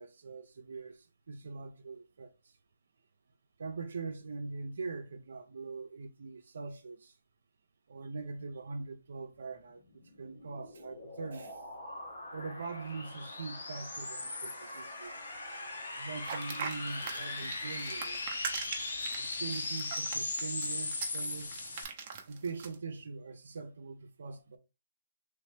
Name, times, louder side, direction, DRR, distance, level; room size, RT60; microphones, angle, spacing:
voice 1, 0.0-2.3 3.6-7.1 7.9-9.8 10.2-11.6 12.3-15.2 16.0-18.2 19.2-21.6 22.3-24.6, right 4 dB, 70° right, 0.7 m, -42 dB
sound 1, 10.0-21.8, left 2 dB, 75° left, 1.5 m, -39 dB
sound 2, 16.2-22.7, right 6 dB, 35° right, 0.8 m, -41 dB
3.1 x 3.1 x 3.5 m
hypercardioid pair, 160°, 0 cm